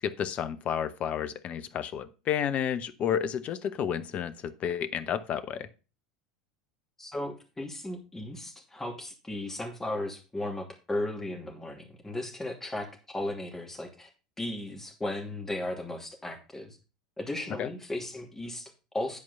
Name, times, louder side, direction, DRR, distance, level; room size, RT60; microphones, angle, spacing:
voice 1, 0.0-5.7 17.6-17.7, left 9 dB, 40° left, 13 dB, 0.9 m, -31 dB
voice 2, 7.0-12.9 13.1-14.1 14.4-16.8 17.2-19.2, left 1 dB, 10° left, 2 dB, 2.7 m, -36 dB
10.5 x 4.7 x 5.6 m, 0.33 s
figure-of-eight pair, 80°, 4 cm